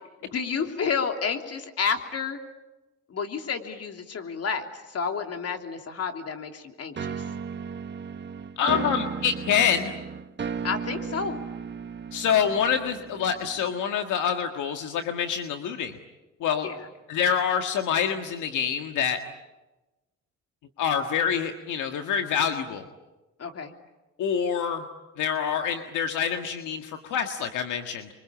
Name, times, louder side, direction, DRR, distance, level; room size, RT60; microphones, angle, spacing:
voice 1, 0.2-2.4 3.1-7.2 8.7-8.8 10.6-11.4 16.6-16.9 23.4-23.7, left 6 dB, 55° left, 5 dB, 3.1 m, -30 dB
sound 1, 7.0-13.8, right 6 dB, 35° right, 1.3 m, -35 dB
voice 2, 8.6-9.9 12.1-16.0 16.4-16.7 17.1-19.2 20.8-22.8 24.2-24.8 25.2-28.1, left 8 dB, 80° left, 5 dB, 1.8 m, -26 dB
28.0 x 24.5 x 8.7 m, 1.1 s
cardioid pair, 90°, 30 cm